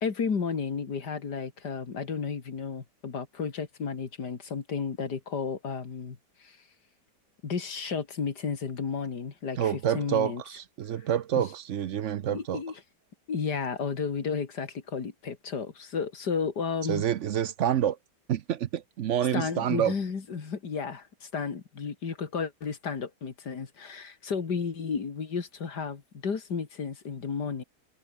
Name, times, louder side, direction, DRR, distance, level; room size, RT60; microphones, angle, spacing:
voice 1, 0.0-6.6 7.4-10.4 11.4-11.5 12.3-12.7 13.3-17.0 19.3-27.6, left 5 dB, 75° left, 2.9 m, -33 dB
voice 2, 9.6-12.6 16.9-18.0 18.3-19.9, right 10 dB, 60° right, 0.8 m, -28 dB
omnidirectional pair, 1.8 m